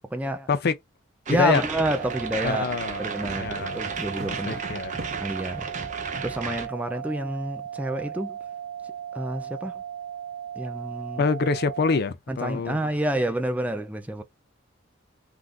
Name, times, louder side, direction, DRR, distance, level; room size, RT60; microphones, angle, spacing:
voice 1, 0.1-0.5 1.3-2.7 3.0-4.6 5.2-5.7 6.2-8.4 9.1-9.8 10.6-11.3 12.3-14.2, right 1 dB, 10° right, 0.3 m, -28 dB
voice 2, 1.3-1.6 2.4-3.8 4.3-5.0 11.2-12.8, left 4 dB, 55° left, 0.5 m, -26 dB
sound 1, 1.3-6.7, right 5 dB, 40° right, 0.7 m, -34 dB
sound 2, 1.4-5.4, right 1 dB, 55° right, 1.4 m, -43 dB
sound 3, 2.0-12.0, right 9 dB, 90° right, 1.3 m, -37 dB
3.5 x 2.5 x 2.3 m
head